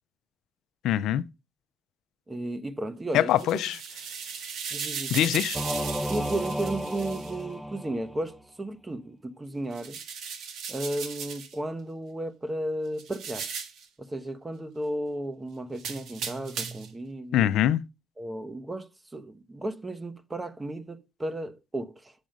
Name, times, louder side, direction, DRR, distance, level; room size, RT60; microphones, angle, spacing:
voice 1, 0.8-1.3 3.1-3.8 5.1-5.6 17.3-17.8, left 12 dB, 85° left, 0.5 m, -23 dB
voice 2, 2.3-3.6 4.7-5.1 6.1-10.0 10.7-13.5 14.0-17.5 18.2-22.1, right 1 dB, 20° right, 1.1 m, -34 dB
sound 1, 3.2-7.3 9.7-11.6 13.0-13.9 15.8-17.0, right 6 dB, 80° right, 1.9 m, -37 dB
Singing / Musical instrument, 5.5-8.4, equal, 5° left, 0.7 m, -33 dB
7.6 x 7.2 x 5.1 m
cardioid pair, 90°, 0 cm